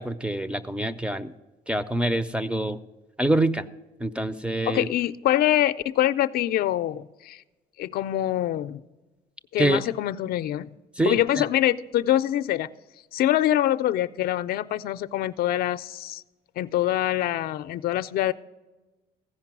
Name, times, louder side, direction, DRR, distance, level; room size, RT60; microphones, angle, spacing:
voice 1, 0.0-1.3 1.7-2.8 3.2-3.6 4.0-4.9 9.6-9.8 11.0-11.4, right 1 dB, 5° right, 0.4 m, -25 dB
voice 2, 4.7-7.4 7.8-8.8 9.5-10.7 11.1-12.7 13.1-16.2 16.6-18.3, left 13 dB, 65° left, 0.4 m, -24 dB
15.5 x 5.2 x 6.0 m
cardioid pair, 110°, 17 cm